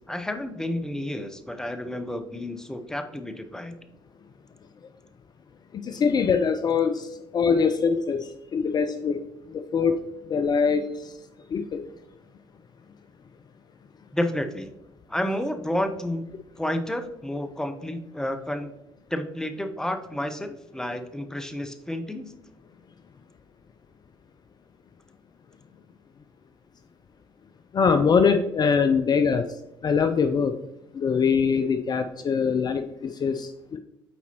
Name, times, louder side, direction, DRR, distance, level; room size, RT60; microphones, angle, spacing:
voice 1, 0.0-3.8 14.1-14.7 15.1-16.2 16.6-18.7 19.1-22.3, left 1 dB, 5° left, 7 dB, 0.7 m, -30 dB
voice 2, 5.7-9.2 9.5-10.0 10.3-11.2 11.5-11.8 27.7-29.5 29.8-30.5 30.9-33.8, left 6 dB, 35° left, 7 dB, 0.4 m, -23 dB
8.2 x 4.1 x 2.9 m, 0.90 s
figure-of-eight pair, 50°, 12 cm